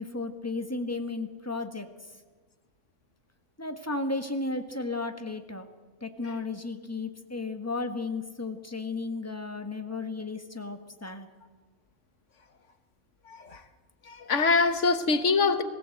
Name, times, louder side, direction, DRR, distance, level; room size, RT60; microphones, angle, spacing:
voice 1, 0.0-1.9 3.6-5.7 6.0-11.3, left 3 dB, 10° left, 6 dB, 1.4 m, -34 dB
voice 2, 13.3-13.6 14.1-15.6, left 4 dB, 65° left, 9 dB, 1.5 m, -24 dB
21.5 x 16.0 x 7.8 m, 1.4 s
omnidirectional pair, 1.4 m